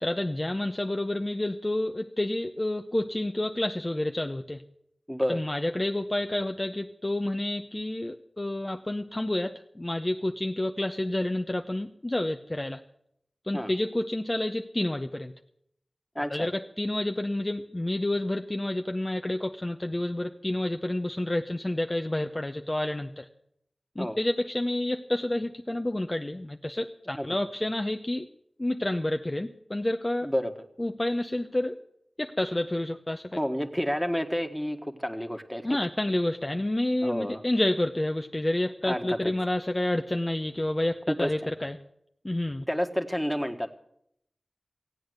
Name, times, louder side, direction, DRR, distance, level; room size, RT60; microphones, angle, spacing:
voice 1, 0.0-4.6 5.3-12.8 13.4-15.3 16.3-23.3 24.0-28.3 28.6-30.3 30.8-31.8 32.2-33.3 35.6-41.8 42.2-42.6, left 1 dB, 30° left, 6 dB, 0.7 m, -29 dB
voice 2, 5.1-5.4 13.5-13.7 16.1-16.5 24.0-24.2 27.1-27.3 30.2-30.5 33.4-35.6 37.0-37.4 38.8-39.2 41.1-41.3 42.7-43.7, equal, 5° left, 5 dB, 1.6 m, -29 dB
16.0 x 8.7 x 7.9 m, 0.73 s
wide cardioid pair, 40°, 0 cm